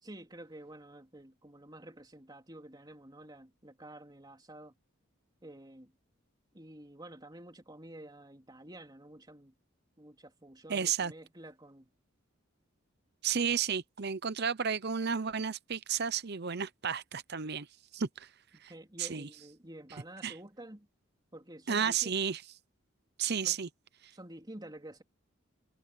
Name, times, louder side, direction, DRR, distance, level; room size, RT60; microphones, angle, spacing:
voice 1, 0.0-4.7 5.4-6.0 6.5-9.5 10.0-11.9 13.5-13.6 18.5-20.9 21.3-22.2 23.4-23.6 24.1-25.0, right 1 dB, 20° right, 3.6 m, -50 dB
voice 2, 10.7-11.1 13.2-17.7 17.9-18.3 18.6-18.7 19.0-19.3 20.2-20.3 21.7-22.4 23.2-23.7, right 7 dB, 55° right, 0.8 m, -32 dB
head